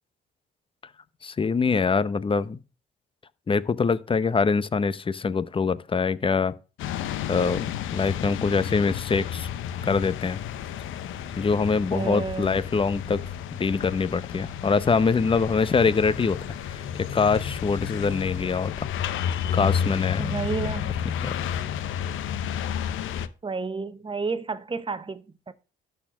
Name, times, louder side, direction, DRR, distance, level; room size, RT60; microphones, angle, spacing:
voice 1, 1.2-2.6 3.5-6.5 7.3-9.5 9.8-10.4 11.4-13.2 13.5-16.8 17.1-18.9 19.5-20.3 21.2-21.4, left 5 dB, 25° left, 0.7 m, -24 dB
sound 1, 6.8-23.3, left 9 dB, 85° left, 0.8 m, -31 dB
sound 2, 8.0-9.7 10.0-12.3, left 6 dB, 55° left, 3.1 m, -51 dB
voice 2, 11.9-12.5 20.2-20.9 23.4-25.5, right 4 dB, 25° right, 1.0 m, -31 dB
12.5 x 4.4 x 6.1 m
cardioid pair, 90°, 20 cm